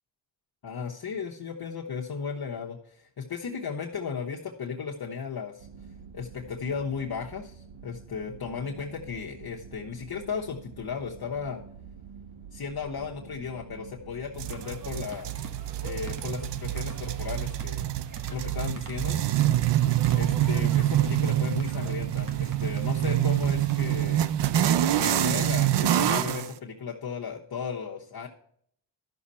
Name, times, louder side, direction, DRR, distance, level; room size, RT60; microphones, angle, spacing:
voice 1, 0.6-5.7 6.1-11.6 12.5-15.3 15.8-17.8 18.3-19.2 20.1-24.2 25.0-28.3, left 6 dB, 50° left, -3 dB, 1.2 m, -35 dB
sound 1, 5.6-15.1, right 6 dB, 75° right, 1.0 m, -47 dB
sound 2, 14.4-24.3, right 3 dB, 40° right, 1.5 m, -45 dB
sound 3, 14.4-26.5, right 12 dB, 60° right, 0.6 m, -26 dB
12.0 x 6.3 x 4.2 m, 0.66 s
cardioid pair, 80°, 47 cm